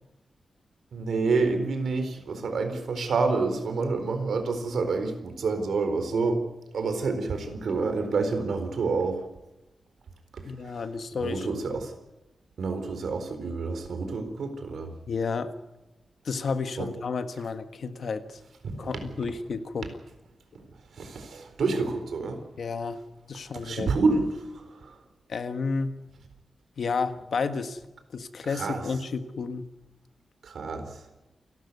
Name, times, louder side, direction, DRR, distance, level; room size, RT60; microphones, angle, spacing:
voice 1, 0.9-6.4 6.7-9.2 10.3-10.4 11.2-11.9 12.6-14.9 16.8-16.9 18.6-18.9 19.2-19.3 20.9-22.4 23.6-25.0 28.4-28.8 30.4-31.0, right 4 dB, 75° right, 8 dB, 4.2 m, -28 dB
voice 2, 10.4-11.8 15.1-15.5 16.2-18.4 18.8-19.9 22.6-23.0 23.3-23.9 25.3-25.9 26.8-27.8 28.1-29.6, left 4 dB, 60° left, 9 dB, 1.6 m, -31 dB
28.5 x 13.0 x 9.6 m, 1.0 s
wide cardioid pair, 180°, 0 cm